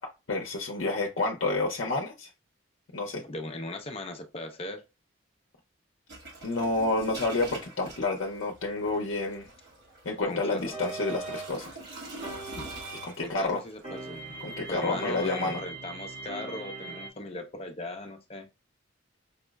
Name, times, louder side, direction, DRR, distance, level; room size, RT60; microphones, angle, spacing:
voice 1, 0.3-2.3 2.9-3.2 6.4-9.5 10.0-11.7 13.0-13.6 14.4-15.6, left 2 dB, 75° left, 0.6 m, -29 dB
voice 2, 3.2-4.8 10.2-10.8 13.2-14.3 14.7-18.5, left 2 dB, 30° left, 0.5 m, -38 dB
sound 1, 6.1-15.4, right 2 dB, 55° right, 1.5 m, -46 dB
sound 2, 10.7-13.3 13.8-17.1, right 3 dB, 30° right, 0.8 m, -40 dB
5.3 x 2.0 x 2.2 m
head